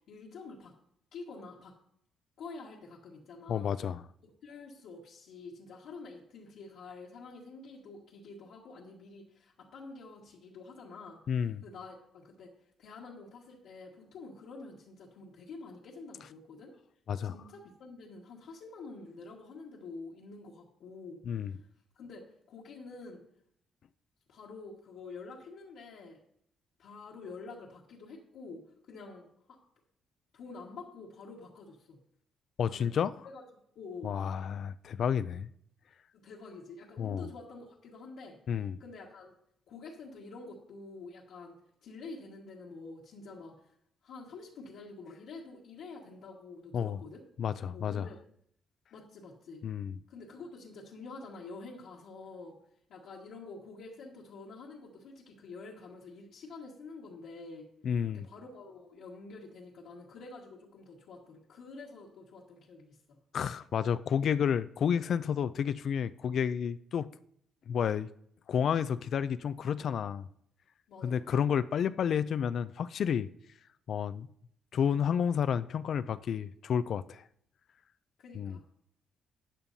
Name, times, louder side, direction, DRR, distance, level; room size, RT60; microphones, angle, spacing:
voice 1, 0.1-0.7 1.1-1.7 2.4-3.8 4.2-11.2 11.6-12.5 12.8-16.7 17.2-21.2 21.9-23.2 24.3-26.2 26.8-29.3 30.3-32.0 32.7-33.0 33.3-33.4 33.7-34.1 36.2-38.4 38.8-39.3 39.7-43.5 44.0-47.2 47.7-48.2 48.9-49.6 50.1-52.5 52.9-57.6 58.1-63.2 70.9-71.4 78.2-78.6, left 3 dB, 80° left, 1.7 m, -48 dB
voice 2, 3.5-4.0 11.3-11.6 17.1-17.3 21.3-21.5 32.6-33.1 34.0-35.5 37.0-37.3 38.5-38.8 46.7-47.0 47.4-48.1 49.6-50.0 57.8-58.3 63.3-67.1 67.7-68.1 68.5-70.3 71.0-73.3 73.9-74.3 74.7-77.2 78.3-78.6, left 8 dB, 60° left, 0.3 m, -30 dB
12.5 x 8.7 x 2.7 m
cardioid pair, 90°, 0 cm